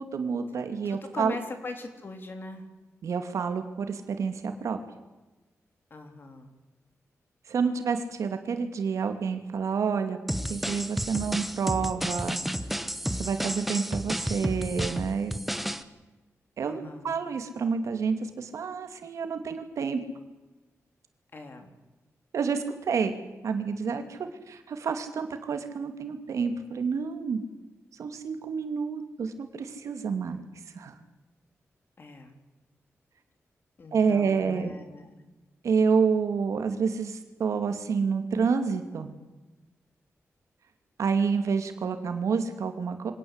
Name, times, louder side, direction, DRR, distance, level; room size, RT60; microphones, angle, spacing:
voice 1, 0.0-1.4 3.0-4.8 7.5-10.2 10.5-12.4 13.2-15.3 16.6-20.0 22.3-23.1 23.4-24.2 24.5-27.4 28.0-30.4 30.7-30.9 33.9-34.7 35.6-39.1 41.0-43.1, right 5 dB, 80° right, 7 dB, 2.6 m, -28 dB
voice 2, 0.8-2.7 5.9-6.5 16.6-17.1 21.3-21.8 32.0-32.4 33.8-35.2, left 3 dB, 40° left, 6 dB, 3.3 m, -41 dB
sound 1, 10.3-15.8, equal, 5° right, 1.1 m, -31 dB
24.5 x 18.0 x 8.2 m, 1.1 s
wide cardioid pair, 145°, 5 cm